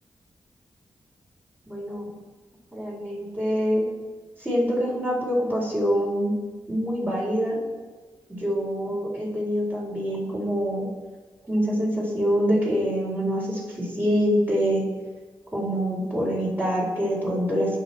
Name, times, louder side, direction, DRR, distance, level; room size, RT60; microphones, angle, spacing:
voice 1, 1.7-2.1 2.7-3.9 4.4-6.3 6.7-7.6 8.3-10.9 11.5-14.9 15.5-17.8, equal, 20° right, -4 dB, 4.2 m, -25 dB
18.5 x 6.2 x 4.3 m, 1.3 s
cardioid pair, 70°, 9 cm